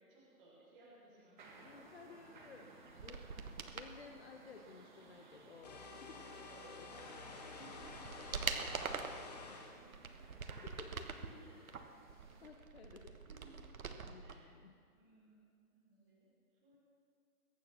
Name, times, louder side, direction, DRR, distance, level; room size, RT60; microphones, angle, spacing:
voice 1, 0.0-1.6 2.5-2.6 6.1-6.2 6.5-10.8 11.1-11.7 13.3-13.5 14.2-14.5 14.9-15.4 15.7-16.3 16.6-16.8, right 1 dB, 5° right, -8 dB, 1.0 m, -62 dB
sound 1, 1.4-12.5, right 3 dB, 30° right, 1.7 m, -60 dB
voice 2, 1.6-2.7 3.0-3.2 3.7-6.3 6.8-6.9 10.6-11.1 12.4-13.1 13.4-13.6 14.0-14.7, left 4 dB, 45° left, 2 dB, 1.1 m, -55 dB
sound 2, 2.9-3.9 7.0-7.1 7.6-9.2 9.8-11.3 11.7-14.4 14.6-14.7, right 5 dB, 65° right, 1.4 m, -44 dB
sound 3, 5.6-9.8, left 3 dB, 25° left, 1.5 m, -50 dB
22.0 x 9.0 x 6.1 m, 2.3 s
hypercardioid pair, 170°, 45 cm